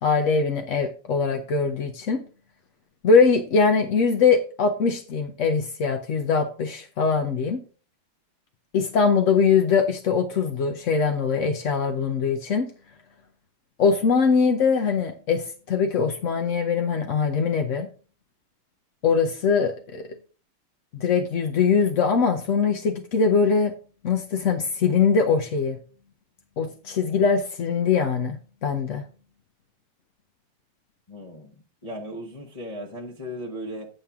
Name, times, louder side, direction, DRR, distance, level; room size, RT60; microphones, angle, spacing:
voice 1, 0.0-2.2 3.0-7.6 8.7-12.7 13.8-17.9 19.0-20.1 20.9-23.7 24.0-25.8 26.6-29.0, left 5 dB, 60° left, 0.8 m, -22 dB
voice 2, 31.1-33.9, equal, 25° left, 0.8 m, -37 dB
8.6 x 7.3 x 3.5 m
omnidirectional pair, 2.2 m